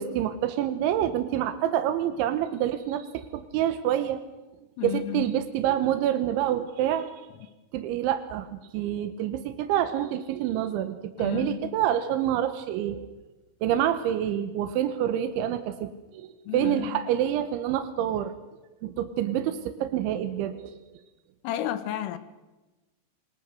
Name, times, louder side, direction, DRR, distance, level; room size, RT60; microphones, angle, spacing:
voice 1, 0.0-4.2 4.8-7.2 7.7-13.1 13.6-18.3 18.8-20.8, right 11 dB, 75° right, 3.3 m, -27 dB
voice 2, 4.8-5.3 11.2-11.7 16.5-17.0 21.4-22.2, left 10 dB, 85° left, 3.9 m, -32 dB
27.0 x 23.5 x 6.6 m
omnidirectional pair, 5.8 m